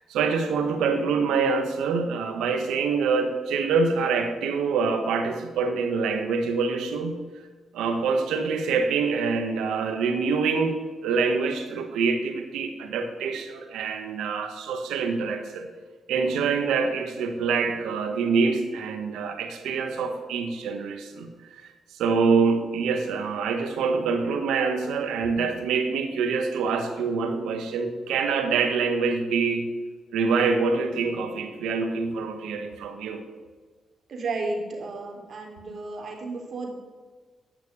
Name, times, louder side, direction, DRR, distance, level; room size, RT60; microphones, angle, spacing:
voice 1, 0.0-7.2 7.7-15.7 16.1-21.7 22.0-29.7 30.1-33.2, right 5 dB, 90° right, 6 dB, 1.4 m, -25 dB
voice 2, 34.1-36.7, right 3 dB, 60° right, 2 dB, 2.9 m, -33 dB
9.4 x 6.2 x 8.4 m, 1.3 s
cardioid pair, 70°, 0 cm